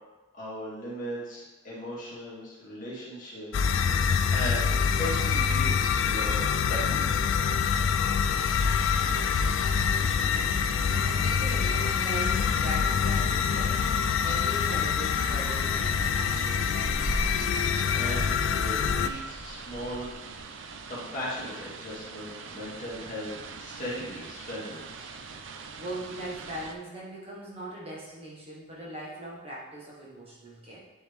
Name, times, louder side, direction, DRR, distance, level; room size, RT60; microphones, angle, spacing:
voice 1, 0.3-7.1 17.9-20.1 20.9-25.1, equal, 40° left, -8 dB, 2.4 m, -38 dB
sound 1, 3.5-19.1, left 6 dB, 70° left, 0.4 m, -26 dB
sound 2, 8.2-26.8, right 5 dB, 65° right, 0.5 m, -43 dB
voice 2, 11.0-13.8 14.2-16.8 25.8-30.8, right 1 dB, 30° right, -5 dB, 1.3 m, -40 dB
sound 3, 15.4-20.4, equal, 5° right, 0.4 m, -38 dB
10.5 x 4.0 x 3.5 m, 1.1 s
head